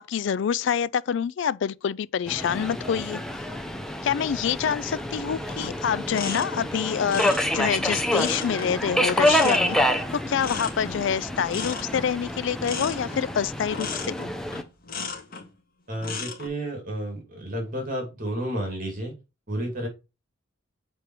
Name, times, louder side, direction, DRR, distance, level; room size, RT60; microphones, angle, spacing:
voice 1, 0.0-3.2 4.0-9.8 10.1-14.2, left 7 dB, 65° left, 0.3 m, -26 dB
Subway metro underground, 2.3-14.6, left 1 dB, 5° left, 0.8 m, -28 dB
sound 1, 5.5-15.5 15.9-16.5, left 5 dB, 45° left, 1.9 m, -36 dB
voice 2, 15.9-19.1 19.5-19.9, right 1 dB, 45° right, 2.8 m, -31 dB
7.6 x 4.5 x 4.7 m
head